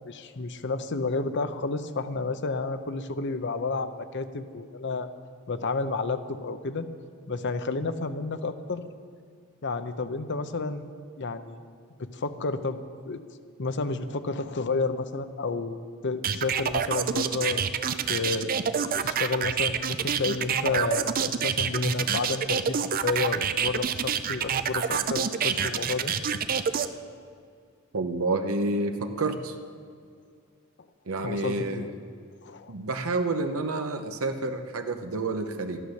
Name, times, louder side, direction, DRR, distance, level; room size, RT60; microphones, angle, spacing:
voice 1, 0.0-5.1 5.5-6.9 7.3-8.8 9.6-10.9 11.2-11.6 12.0-12.8 13.1-13.2 13.6-17.7 18.1-18.5 19.0-26.4 31.2-31.9 32.4-32.7, left 3 dB, 55° left, 11 dB, 0.7 m, -31 dB
sound 1, 16.2-26.9, right 7 dB, 40° right, 0.5 m, -27 dB
voice 2, 27.9-29.6 31.1-31.9 32.7-35.8, right 2 dB, 70° right, 6 dB, 0.8 m, -29 dB
13.0 x 11.0 x 6.5 m, 2.2 s
head